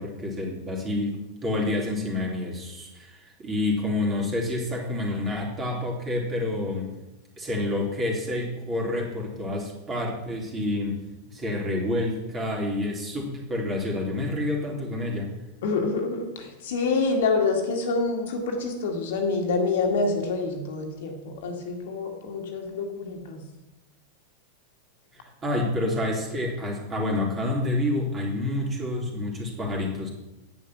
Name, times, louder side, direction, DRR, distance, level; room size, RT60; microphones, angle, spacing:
voice 1, 0.0-6.9 7.4-11.0 11.3-15.3 25.1-30.1, left 1 dB, 20° right, -1 dB, 3.5 m, -28 dB
voice 2, 15.6-23.4, left 3 dB, 55° left, 3 dB, 2.1 m, -27 dB
10.0 x 9.2 x 6.1 m, 0.98 s
figure-of-eight pair, 90°, 0 cm